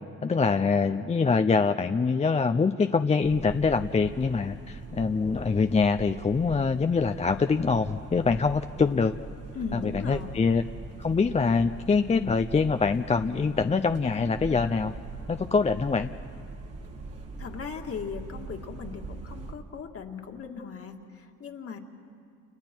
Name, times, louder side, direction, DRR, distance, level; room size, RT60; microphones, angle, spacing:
voice 1, 0.2-9.2 9.7-10.6 11.0-14.9 15.3-16.1, left 4 dB, 20° left, 8 dB, 0.5 m, -24 dB
sound 1, 3.2-19.5, right 3 dB, 55° right, 2.0 m, -42 dB
voice 2, 9.5-10.4 17.4-21.8, left 6 dB, 50° left, 3 dB, 2.1 m, -38 dB
30.0 x 29.0 x 4.5 m, 2.4 s
cardioid pair, 90°, 30 cm